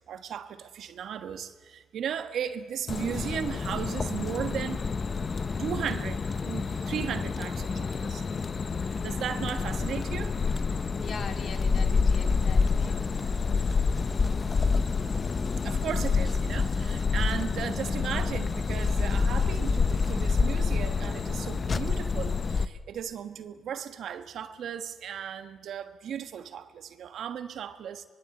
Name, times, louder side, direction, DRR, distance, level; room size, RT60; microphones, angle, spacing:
voice 1, 0.1-4.8 5.6-8.2 9.0-10.3 15.6-28.0, right 8 dB, 70° right, 9 dB, 1.4 m, -36 dB
sound 1, 2.9-22.7, left 4 dB, 35° left, 0.9 m, -28 dB
voice 2, 11.0-13.1, left 5 dB, 55° left, 5 dB, 2.8 m, -41 dB
23.5 x 22.0 x 8.4 m, 1.4 s
cardioid pair, 90°, 0 cm